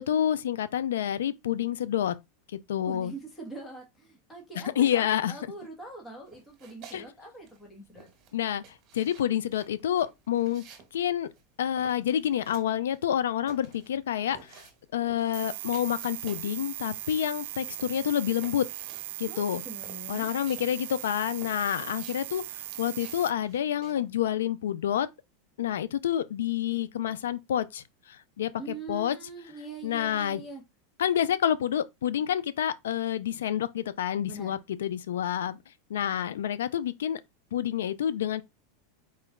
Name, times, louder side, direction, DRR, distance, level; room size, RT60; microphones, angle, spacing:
voice 1, 0.0-2.1 2.7-3.1 4.8-5.3 6.9-7.0 8.3-8.6 8.9-10.6 10.9-11.3 11.6-14.6 14.9-18.6 19.2-19.6 20.1-25.1 25.6-29.2 29.8-30.4 31.0-35.6 35.9-37.2 37.5-38.4, left 10 dB, 90° left, 0.5 m, -28 dB
voice 2, 2.9-8.1 19.3-20.3 28.6-30.6 34.3-34.6, right 2 dB, 15° left, 1.6 m, -43 dB
sound 1, 6.3-7.1 7.3-16.6 16.9-24.1, right 6 dB, 40° right, 1.7 m, -53 dB
sound 2, 15.3-23.3, right 14 dB, 70° right, 0.4 m, -39 dB
4.3 x 3.0 x 3.6 m
supercardioid pair, 125°, 0 cm